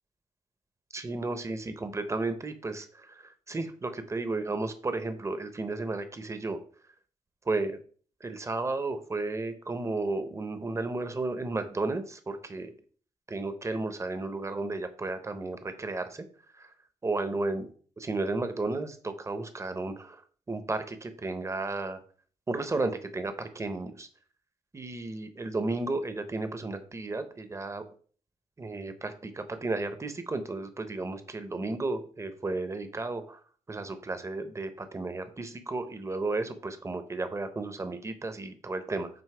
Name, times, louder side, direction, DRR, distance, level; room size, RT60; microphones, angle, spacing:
voice 1, 0.9-6.6 7.5-7.8 8.2-12.7 13.3-16.2 16.6-16.7 17.0-17.7 18.0-20.2 20.5-22.0 22.5-24.1 24.7-27.8 28.6-33.4 33.7-39.1, right 3 dB, 20° right, 9 dB, 0.7 m, -33 dB
7.6 x 2.6 x 4.8 m, 0.44 s
wide cardioid pair, 125°, 14 cm